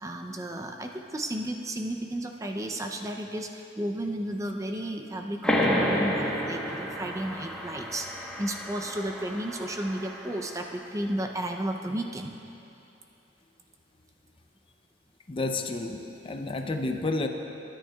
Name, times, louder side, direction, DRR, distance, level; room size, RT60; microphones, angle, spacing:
voice 1, 0.0-12.3, right 1 dB, 20° right, 3 dB, 0.5 m, -33 dB
sound 1, 5.4-10.7, equal, 5° left, 1.1 m, -30 dB
voice 2, 15.3-17.3, left 2 dB, 30° left, 5 dB, 0.5 m, -30 dB
21.5 x 10.0 x 2.3 m, 2.8 s
head